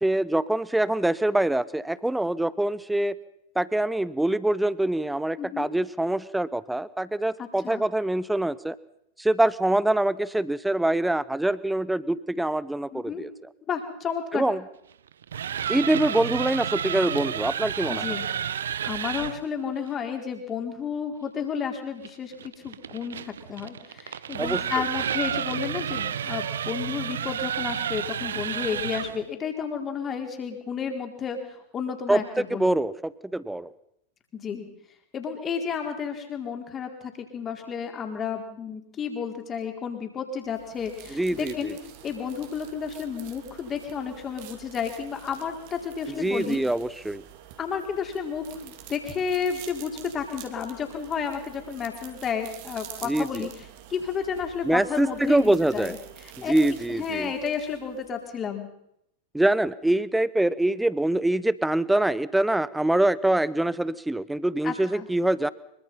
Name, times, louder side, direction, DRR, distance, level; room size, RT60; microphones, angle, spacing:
voice 1, 0.0-3.2 3.5-8.8 9.2-13.3 14.3-14.6 15.7-18.0 24.4-24.6 32.1-32.2 32.5-33.7 41.1-41.7 46.1-47.2 53.0-53.5 54.6-55.9 56.5-57.3 59.3-65.5, right 1 dB, 5° right, 20 dB, 0.9 m, -24 dB
voice 2, 5.4-5.7 7.4-7.9 12.9-13.2 13.7-14.4 17.9-18.3 18.8-32.8 34.3-34.7 35.1-41.8 42.0-46.6 47.6-53.5 53.9-56.6 56.9-58.7 64.6-65.1, left 6 dB, 25° left, 5 dB, 4.4 m, -32 dB
sound 1, 15.1-19.4 22.0-29.2, right 9 dB, 65° right, 0.8 m, -31 dB
sound 2, 40.4-58.3, right 11 dB, 45° right, 3.1 m, -47 dB
25.0 x 23.5 x 5.7 m, 0.76 s
figure-of-eight pair, 90°, 0 cm